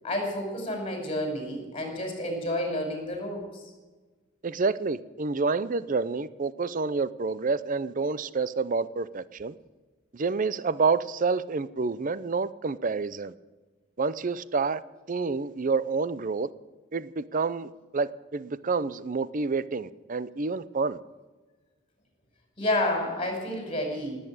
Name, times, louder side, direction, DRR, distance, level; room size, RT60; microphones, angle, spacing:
voice 1, 0.0-3.6 22.6-24.2, left 1 dB, 30° left, 5.6 m, -30 dB
voice 2, 4.4-9.5 10.1-13.3 14.0-14.8 15.1-16.5 16.9-21.0, right 4 dB, 40° right, 0.6 m, -28 dB
18.5 x 8.9 x 8.8 m
head